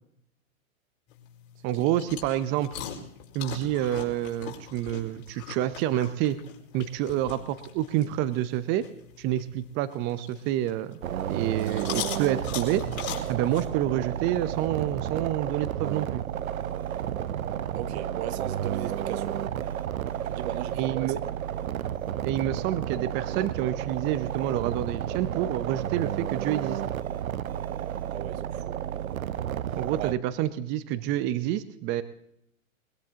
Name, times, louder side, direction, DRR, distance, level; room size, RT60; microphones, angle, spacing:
sound 1, 1.1-13.7, left 9 dB, 50° left, 5.0 m, -42 dB
voice 1, 1.6-2.8 3.3-6.4 6.7-8.8 9.2-11.0 11.3-12.8 13.3-16.2 20.8-21.2 22.2-26.8 29.8-32.0, right 12 dB, 25° right, 0.7 m, -28 dB
sound 2, 11.0-30.2, right 10 dB, 80° right, 0.9 m, -32 dB
voice 2, 17.7-19.4 20.2-21.2 28.1-28.8 30.0-30.2, right 12 dB, 50° right, 1.1 m, -37 dB
21.0 x 21.0 x 2.9 m
hypercardioid pair, 125°, 41 cm